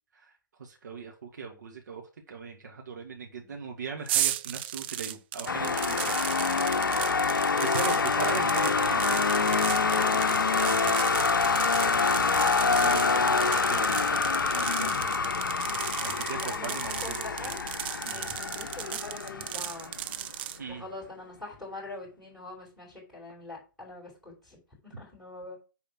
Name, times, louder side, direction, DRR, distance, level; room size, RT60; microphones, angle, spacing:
voice 1, 0.6-6.2 7.6-9.6 9.8-15.3 16.0-17.6 18.0-18.3 20.6-20.8, right 5 dB, 55° right, 1.9 m, -40 dB
sound 1, 4.1-20.6, right 13 dB, 30° right, 0.5 m, -35 dB
sound 2, 5.5-20.3, left 5 dB, 70° left, 0.6 m, -26 dB
voice 2, 16.3-17.7 18.1-19.9 20.7-25.6, left 2 dB, ahead, 6.0 m, -44 dB
10.5 x 4.2 x 6.2 m
figure-of-eight pair, 125°, 11 cm